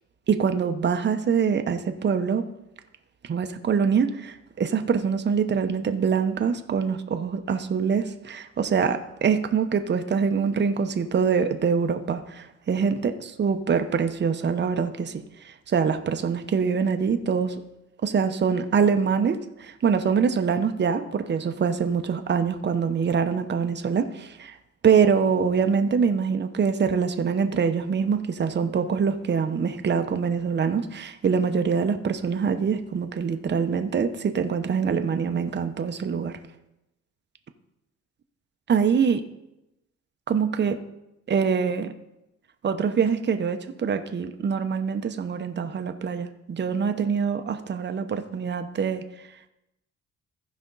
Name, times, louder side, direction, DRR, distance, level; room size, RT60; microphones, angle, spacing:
voice 1, 0.3-2.4 3.3-17.5 18.0-24.6 24.8-36.4 38.7-39.2 40.3-40.8 41.3-41.9 42.6-49.0, right 6 dB, 35° right, 7 dB, 0.8 m, -24 dB
15.0 x 5.2 x 4.0 m, 0.89 s
cardioid pair, 90°, 30 cm